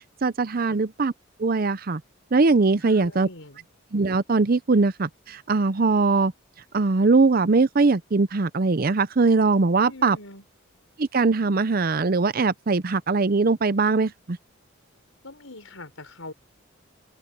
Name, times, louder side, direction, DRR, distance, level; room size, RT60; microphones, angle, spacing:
voice 1, 0.2-1.1 1.4-2.0 2.3-3.3 3.9-6.3 6.7-10.2 11.0-14.4, right 3 dB, 45° right, 0.6 m, -21 dB
voice 2, 2.8-3.7 9.8-10.4 15.2-16.3, left 2 dB, 75° left, 5.5 m, -42 dB
open air
head